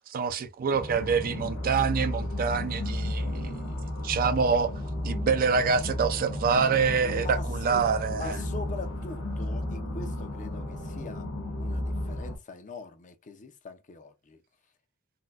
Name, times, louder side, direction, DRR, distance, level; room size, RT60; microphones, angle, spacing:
voice 1, 0.0-3.5 4.0-4.7 5.0-8.4, right 5 dB, 40° right, 0.4 m, -26 dB
sound 1, 0.7-12.4, left 1 dB, 65° left, 1.2 m, -33 dB
Drum, 6.3-8.0, left 1 dB, 90° left, 1.2 m, -46 dB
voice 2, 7.0-11.3 11.6-14.4, left 3 dB, 35° left, 0.5 m, -43 dB
4.1 x 2.1 x 2.4 m
head